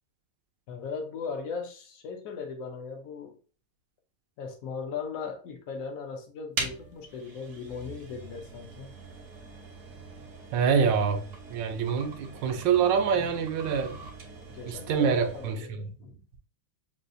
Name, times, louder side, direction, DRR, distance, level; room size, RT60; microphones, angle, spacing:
voice 1, 0.7-3.4 4.4-8.9 13.5-13.8 14.5-16.2, left 5 dB, 65° left, 0.8 m, -38 dB
sound 1, 6.5-15.7, right 4 dB, 55° right, 0.9 m, -42 dB
voice 2, 10.5-14.0 14.7-15.9, right 6 dB, 70° right, 1.2 m, -26 dB
6.4 x 2.4 x 2.5 m
omnidirectional pair, 2.3 m